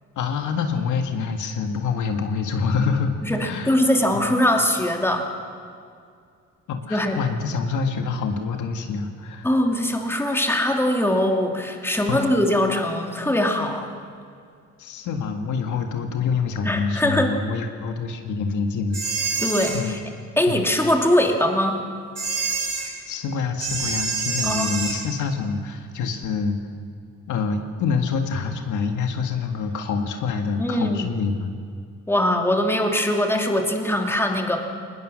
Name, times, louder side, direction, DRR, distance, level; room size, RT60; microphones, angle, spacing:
voice 1, 0.2-3.1 3.4-3.8 4.1-4.3 6.7-9.5 12.1-12.4 14.8-19.0 19.7-20.0 20.5-20.7 23.1-26.6 27.3-31.5, left 5 dB, 80° left, 5 dB, 1.9 m, -26 dB
voice 2, 3.2-5.3 6.9-7.2 9.4-13.9 16.6-17.4 19.4-20.0 20.4-21.8 24.4-24.7 30.6-31.1 32.1-34.6, left 1 dB, 10° left, 2 dB, 2.8 m, -22 dB
sound 1, 18.9-19.8 22.2-22.9 23.6-25.0, right 4 dB, 55° right, 5.8 m, -26 dB
20.5 x 20.0 x 6.5 m, 2.3 s
cardioid pair, 90°, 30 cm